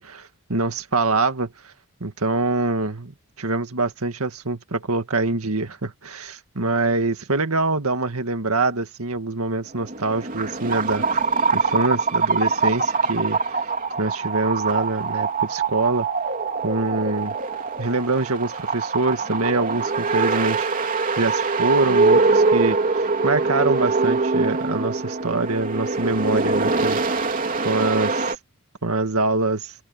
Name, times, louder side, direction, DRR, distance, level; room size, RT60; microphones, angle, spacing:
voice 1, 0.0-1.7 2.0-3.1 3.4-11.2 11.5-13.6 14.0-16.1 16.6-17.4 17.8-27.0 27.6-28.4 28.8-29.7, right 3 dB, 85° right, 2.0 m, -24 dB
sound 1, 9.7-28.3, right 4 dB, 40° right, 3.3 m, -23 dB
head